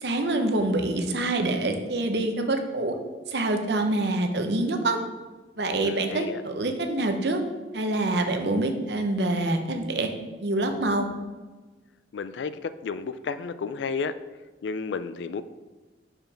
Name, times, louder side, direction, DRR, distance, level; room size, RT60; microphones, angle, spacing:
voice 1, 0.0-2.9 3.3-5.0 5.6-7.4 7.7-10.1 10.4-11.0, right 2 dB, 65° right, 5 dB, 0.8 m, -26 dB
voice 2, 5.8-6.4 12.1-14.2 14.6-15.4, left 5 dB, 85° left, 13 dB, 0.4 m, -32 dB
5.1 x 4.9 x 5.8 m, 1.3 s
head